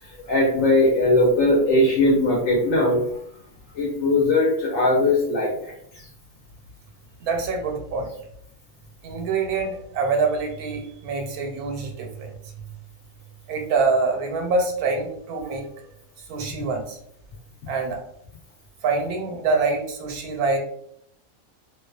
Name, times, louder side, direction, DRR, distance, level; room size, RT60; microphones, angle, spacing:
voice 1, 0.0-3.0 3.7-6.1, left 1 dB, 70° left, -3 dB, 1.0 m, -20 dB
voice 2, 7.2-8.1 9.0-12.3 13.5-15.7 16.3-17.0 17.7-18.0 18.8-20.6, right 4 dB, 90° right, 2 dB, 1.1 m, -25 dB
2.6 x 2.2 x 2.3 m, 0.70 s
omnidirectional pair, 1.5 m